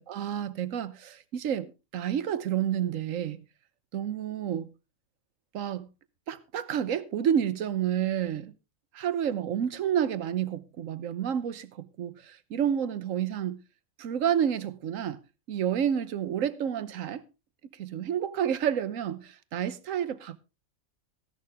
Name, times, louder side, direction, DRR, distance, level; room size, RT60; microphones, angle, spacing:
voice 1, 0.0-1.7 1.9-3.4 3.9-4.7 5.5-5.9 6.3-8.5 8.9-13.6 14.0-15.2 15.5-17.2 17.8-20.4, right 9 dB, 70° right, 1.2 m, -29 dB
14.5 x 11.0 x 3.5 m
omnidirectional pair, 1.5 m